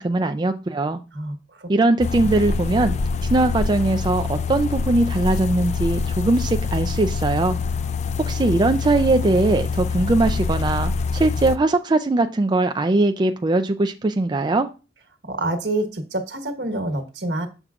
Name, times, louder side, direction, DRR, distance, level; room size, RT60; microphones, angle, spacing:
voice 1, 0.0-1.0 1.7-2.9 3.3-7.6 8.3-14.7, right 2 dB, 25° right, 7 dB, 0.4 m, -20 dB
voice 2, 1.1-1.7 2.2-2.3 15.2-17.5, right 2 dB, 75° right, 5 dB, 1.3 m, -27 dB
sound 1, 2.0-11.6, left 4 dB, 40° left, 0.4 m, -25 dB
6.9 x 6.6 x 2.4 m, 0.30 s
head